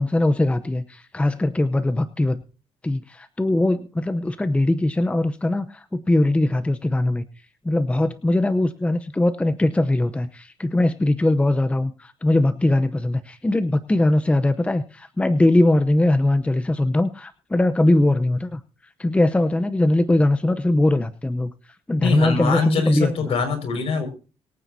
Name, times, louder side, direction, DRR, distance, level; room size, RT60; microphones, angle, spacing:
voice 1, 0.0-2.4 2.8-7.2 7.6-18.6 19.0-21.5 21.9-23.3, left 1 dB, 10° left, 10 dB, 0.8 m, -21 dB
voice 2, 22.0-24.1, left 5 dB, 60° left, 5 dB, 5.4 m, -23 dB
22.5 x 9.2 x 2.7 m, 0.35 s
cardioid pair, 105°, 11 cm